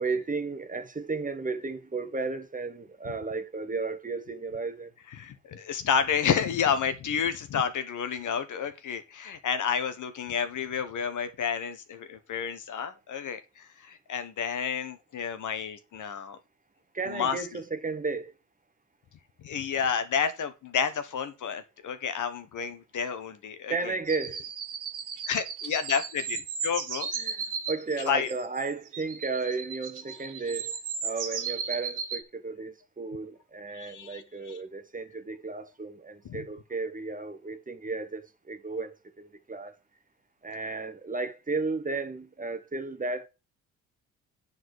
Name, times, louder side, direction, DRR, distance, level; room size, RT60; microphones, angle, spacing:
voice 1, 0.0-4.9 16.9-18.3 23.7-24.4 27.2-30.7 31.0-39.7 40.4-43.3, right 3 dB, 20° right, 1.2 m, -34 dB
voice 2, 5.1-16.4 17.1-17.5 19.4-24.0 25.3-27.1 28.1-28.3 33.7-34.6 36.2-36.5, left 7 dB, 55° left, 1.2 m, -30 dB
sound 1, 24.1-32.2, right 6 dB, 60° right, 1.8 m, -35 dB
9.2 x 4.2 x 4.8 m
hypercardioid pair, 55°, 36 cm